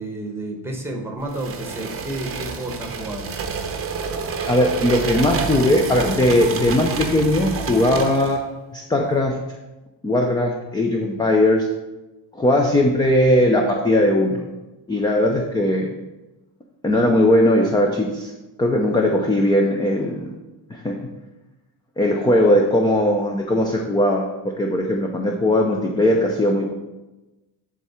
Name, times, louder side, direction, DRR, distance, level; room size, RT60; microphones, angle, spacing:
voice 1, 0.0-3.3, right 1 dB, 5° right, 2 dB, 1.0 m, -31 dB
sound 1, 1.3-8.4, right 5 dB, 30° right, 0.7 m, -28 dB
voice 2, 4.5-8.4 8.7-9.4 10.0-11.7 12.3-14.5 14.9-15.9 16.8-18.3 18.6-20.3 20.7-21.0 22.0-24.3 24.6-26.7, left 1 dB, 10° left, 1 dB, 0.3 m, -19 dB
10.0 x 3.7 x 4.2 m, 1.1 s
cardioid pair, 165°, 44 cm